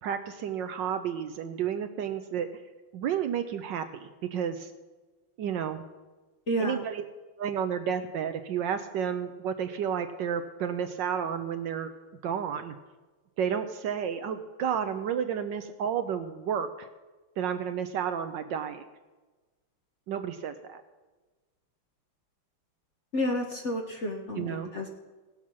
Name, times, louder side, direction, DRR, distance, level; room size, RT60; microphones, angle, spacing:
voice 1, 0.0-2.5 2.9-4.7 5.4-5.8 6.6-7.0 7.4-11.9 12.2-12.7 13.4-16.9 17.4-18.8 20.1-20.8 24.3-24.7, right 8 dB, 70° right, 9 dB, 1.2 m, -31 dB
voice 2, 6.5-6.8 23.1-24.9, equal, 45° left, 2 dB, 1.0 m, -30 dB
17.5 x 7.3 x 6.1 m, 1.2 s
omnidirectional pair, 2.3 m